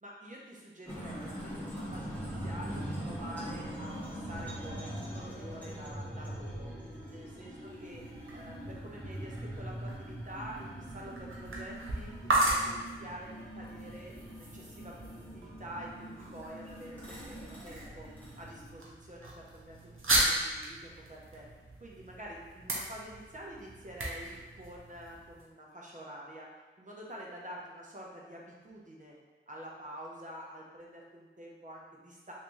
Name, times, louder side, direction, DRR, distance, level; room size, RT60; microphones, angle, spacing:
voice 1, 0.0-6.7 7.1-8.0 8.3-18.1 18.4-21.5 21.8-26.5 26.8-29.2 29.5-32.3, equal, 35° right, -3 dB, 0.9 m, -47 dB
sound 1, 0.9-18.7, equal, 5° left, 1.5 m, -42 dB
sound 2, 7.6-25.4, right 1 dB, 75° right, 0.8 m, -37 dB
3.3 x 2.8 x 3.1 m, 1.3 s
cardioid pair, 50°, 21 cm